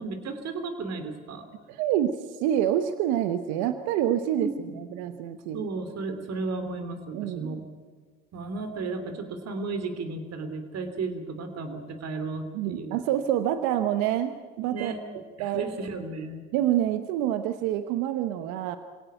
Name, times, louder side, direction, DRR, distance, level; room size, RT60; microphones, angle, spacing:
voice 1, 0.0-1.5 4.4-4.8 5.5-7.6 8.3-13.0 14.7-15.0 15.4-16.4, right 3 dB, 60° right, 8 dB, 3.4 m, -34 dB
voice 2, 1.7-4.5 4.7-5.6 7.1-7.6 12.5-14.9 15.4-15.6 16.5-18.8, right 11 dB, 80° right, 9 dB, 1.1 m, -27 dB
26.5 x 17.0 x 9.2 m, 1.5 s
hypercardioid pair, 65°, 30 cm